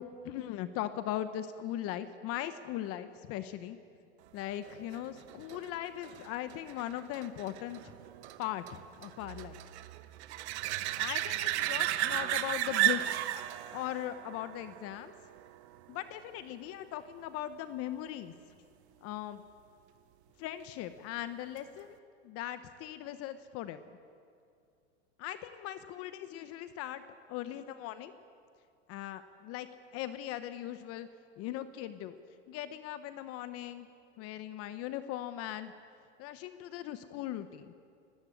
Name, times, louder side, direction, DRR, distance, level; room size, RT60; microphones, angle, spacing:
voice 1, 0.0-3.8 4.3-7.9 8.4-9.6 11.0-13.2 13.7-15.1 15.9-18.3 19.0-19.4 20.4-22.0 22.2-23.8 25.2-27.0 27.3-28.1 28.9-29.7 29.9-31.1 31.4-32.1 32.5-33.9 34.2-35.7 36.2-37.7, left 12 dB, 40° left, 11 dB, 1.0 m, -39 dB
sound 1, 4.7-15.9 21.6-21.7, right 15 dB, 65° right, 1.1 m, -35 dB
19.0 x 15.5 x 8.7 m, 2.3 s
hypercardioid pair, 120°, 35 cm